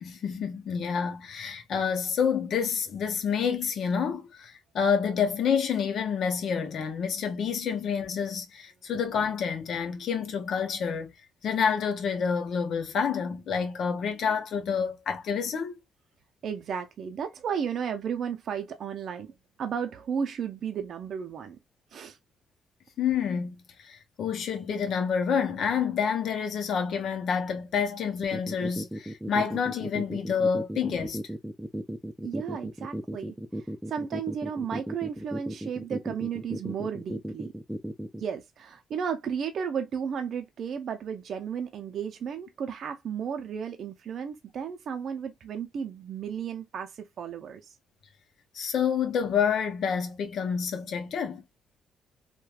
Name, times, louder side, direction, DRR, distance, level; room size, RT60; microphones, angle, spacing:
voice 1, 0.0-11.1 11.4-15.7 23.0-31.2 48.5-51.4, left 6 dB, 65° left, 0.7 m, -28 dB
voice 2, 16.4-19.3 19.6-21.6 21.9-22.2 32.2-37.5 38.2-47.6, right 7 dB, 60° right, 0.5 m, -34 dB
sound 1, 28.2-38.2, right 1 dB, 5° right, 0.4 m, -35 dB
3.1 x 2.2 x 2.3 m
cardioid pair, 90°, 0 cm